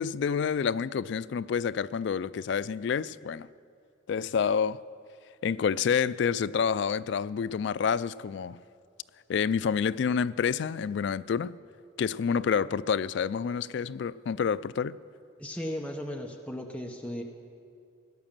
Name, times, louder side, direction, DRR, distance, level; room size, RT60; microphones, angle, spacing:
voice 1, 0.0-3.5 4.1-4.8 5.4-8.6 9.3-11.6 12.0-15.0, left 6 dB, 60° left, 0.3 m, -28 dB
voice 2, 15.4-17.2, left 1 dB, 5° left, 0.8 m, -36 dB
17.0 x 11.0 x 7.3 m
head